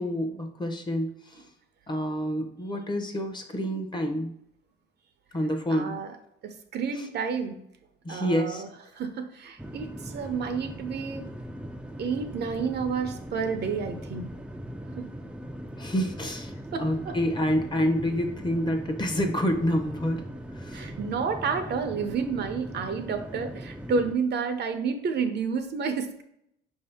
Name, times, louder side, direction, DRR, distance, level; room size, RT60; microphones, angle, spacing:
voice 1, 0.0-1.5 1.9-4.4 5.3-6.0 6.9-7.1 8.0-8.6 15.8-20.9, equal, 25° left, 5 dB, 0.7 m, -28 dB
voice 2, 5.7-6.1 6.4-7.6 8.1-8.7 9.0-11.2 12.0-14.3 15.0-15.1 16.7-17.2 20.7-26.2, right 5 dB, 55° right, 7 dB, 0.6 m, -30 dB
sound 1, 9.6-24.1, equal, 5° right, 0.3 m, -40 dB
5.1 x 2.7 x 3.4 m, 0.74 s
cardioid pair, 90°, 20 cm